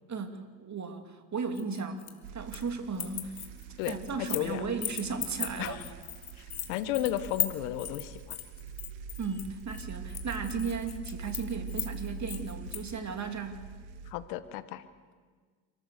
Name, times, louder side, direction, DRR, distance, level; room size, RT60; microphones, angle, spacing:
voice 1, 0.1-2.1 2.3-3.5 3.9-5.8 9.2-13.6, right 5 dB, 35° right, 6 dB, 2.8 m, -35 dB
sound 1, 1.5-2.7 2.9-4.5 4.8-12.9, left 10 dB, 50° left, 2.7 m, -37 dB
sound 2, 2.2-14.1, right 5 dB, 90° right, 1.7 m, -44 dB
voice 2, 3.8-4.6 5.6-5.8 6.7-8.4 14.1-14.8, left 13 dB, 80° left, 12 dB, 1.4 m, -33 dB
29.0 x 14.0 x 6.7 m, 1.5 s
supercardioid pair, 80°, 50 cm